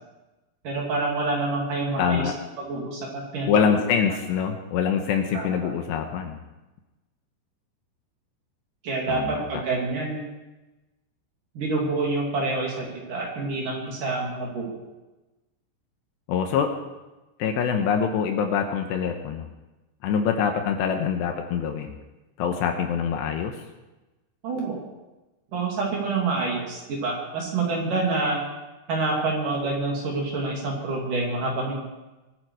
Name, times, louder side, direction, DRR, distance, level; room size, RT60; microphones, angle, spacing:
voice 1, 0.6-2.2 2.6-3.5 5.3-5.5 8.8-10.2 11.6-14.7 24.4-24.8 25.5-28.4 28.9-31.8, right 3 dB, 50° right, -1 dB, 3.8 m, -27 dB
voice 2, 2.0-2.3 3.5-6.4 9.1-9.6 16.3-16.7 17.4-19.5 20.0-22.0 22.4-23.6, left 7 dB, 75° left, 4 dB, 3.0 m, -25 dB
23.5 x 9.7 x 4.8 m, 1.1 s
omnidirectional pair, 5.5 m